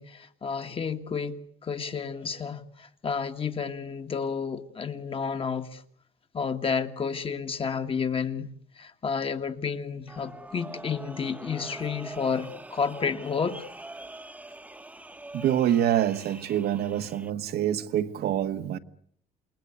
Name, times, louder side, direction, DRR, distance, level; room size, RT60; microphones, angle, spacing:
voice 1, 0.0-5.8 6.3-8.5 8.8-13.6, left 6 dB, 35° left, 1.9 m, -31 dB
sound 1, 10.1-17.3, right 2 dB, 10° right, 1.3 m, -44 dB
voice 2, 15.3-18.8, right 11 dB, 70° right, 1.5 m, -26 dB
28.5 x 21.0 x 8.2 m
cardioid pair, 110°, 17 cm